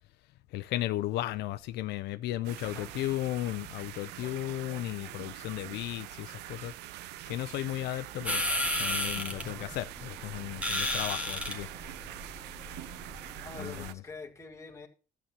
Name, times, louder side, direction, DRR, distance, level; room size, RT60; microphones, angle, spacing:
voice 1, 0.5-6.7 7.3-8.4 8.8-11.7 13.6-14.0, left 15 dB, 75° left, 0.5 m, -35 dB
sound 1, 2.4-13.9, right 15 dB, 85° right, 0.5 m, -44 dB
sound 2, 8.3-13.9, equal, 10° right, 1.8 m, -34 dB
voice 2, 13.4-14.9, left 4 dB, 15° left, 1.9 m, -45 dB
12.5 x 8.7 x 2.9 m
cardioid pair, 110°, 17 cm